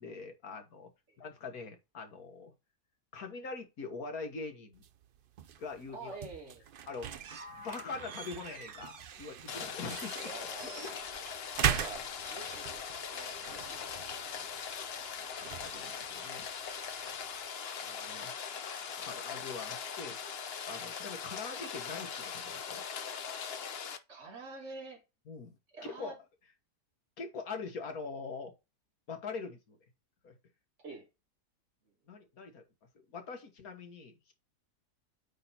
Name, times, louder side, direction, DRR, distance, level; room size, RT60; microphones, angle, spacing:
voice 1, 0.0-0.9 1.2-2.5 3.1-4.8 5.6-6.2 6.9-7.2 7.5-10.3 10.6-11.0 13.4-13.7 15.2-16.5 17.8-18.3 19.0-20.2 20.7-22.8 25.3-25.6 25.8-26.2 27.2-28.5 29.1-29.8 30.2-30.4 32.1-32.6 33.1-34.3, left 4 dB, 65° left, 1.9 m, -43 dB
sound 1, 4.7-17.5, right 8 dB, 80° right, 0.4 m, -41 dB
voice 2, 5.9-6.6 10.2-11.0 11.6-14.5 24.1-25.0 25.7-26.2 30.8-31.1, right 3 dB, 45° right, 3.0 m, -47 dB
sound 2, 7.3-11.2, left 2 dB, 20° right, 1.3 m, -56 dB
Rain, 9.5-24.0, left 6 dB, 50° left, 0.9 m, -41 dB
8.9 x 3.8 x 4.2 m
omnidirectional pair, 1.7 m